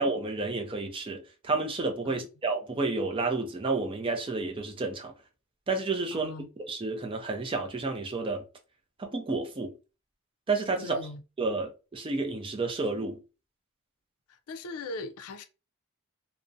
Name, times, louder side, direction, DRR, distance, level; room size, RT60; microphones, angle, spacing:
voice 1, 0.0-5.1 5.7-6.3 6.7-8.4 9.0-9.7 10.5-11.0 11.4-13.2, right 3 dB, 25° right, 0.4 m, -30 dB
voice 2, 6.1-6.5 10.8-11.2 14.3-15.5, left 2 dB, 75° left, 0.4 m, -40 dB
2.4 x 2.0 x 2.6 m
head